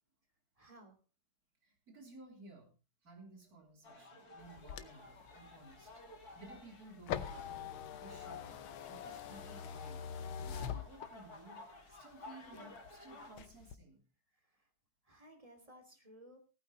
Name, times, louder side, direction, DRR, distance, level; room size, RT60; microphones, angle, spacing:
voice 1, 0.6-1.0 14.3-14.7 15.0-16.4, right 1 dB, 15° right, 5 dB, 2.8 m, -58 dB
voice 2, 1.6-2.7 3.0-5.9 6.3-7.5 8.0-10.1 10.4-11.6 11.9-14.0, right 2 dB, 45° right, 2 dB, 3.8 m, -56 dB
sound 1, 3.8-13.4, left 2 dB, 45° left, 3.3 m, -54 dB
sound 2, 4.4-11.5 11.9-12.9 13.3-13.7, left 9 dB, 75° left, 1.7 m, -44 dB
18.0 x 8.9 x 4.1 m, 0.32 s
omnidirectional pair, 2.3 m